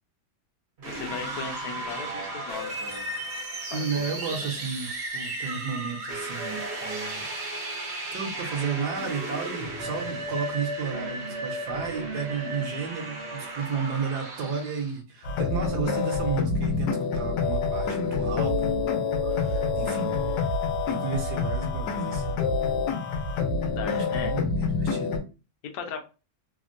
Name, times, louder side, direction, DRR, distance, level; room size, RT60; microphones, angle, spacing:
voice 1, 0.8-3.1 3.7-4.0 23.7-24.3 25.7-26.0, left 6 dB, 70° left, 1.1 m, -37 dB
sound 1, 0.8-15.0, right 2 dB, 50° right, 0.8 m, -34 dB
voice 2, 3.7-7.3 7.6-20.5 20.9-22.4 23.8-25.2, right 5 dB, 70° right, 1.3 m, -33 dB
sound 2, 15.2-25.2, left 4 dB, 85° left, 1.3 m, -27 dB
3.4 x 2.1 x 2.5 m
omnidirectional pair, 1.9 m